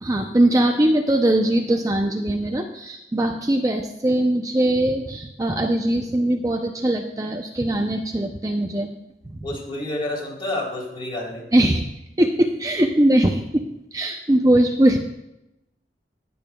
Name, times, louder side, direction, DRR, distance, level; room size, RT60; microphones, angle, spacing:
voice 1, 0.0-8.9 9.3-9.5 11.5-11.9 12.2-15.0, right 1 dB, 20° right, 3 dB, 0.5 m, -21 dB
voice 2, 9.4-11.5, left 1 dB, 30° left, -3 dB, 3.3 m, -29 dB
18.5 x 8.7 x 2.3 m, 0.89 s
head